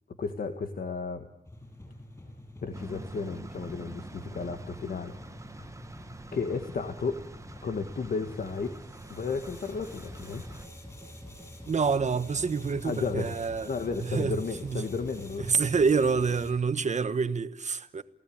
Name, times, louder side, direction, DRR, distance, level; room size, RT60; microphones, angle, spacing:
voice 1, 0.2-1.3 2.6-5.8 6.3-7.2 7.6-8.8 9.1-10.5 12.8-13.3 13.6-15.7, left 4 dB, 60° left, 1.7 m, -33 dB
sound 1, 1.4-16.5, left 1 dB, 20° left, 7.8 m, -47 dB
sound 2, 2.7-10.7, right 2 dB, 20° right, 1.1 m, -46 dB
voice 2, 11.7-14.8 15.4-18.0, right 5 dB, 45° right, 1.2 m, -27 dB
29.0 x 17.5 x 8.7 m
wide cardioid pair, 145°, 17 cm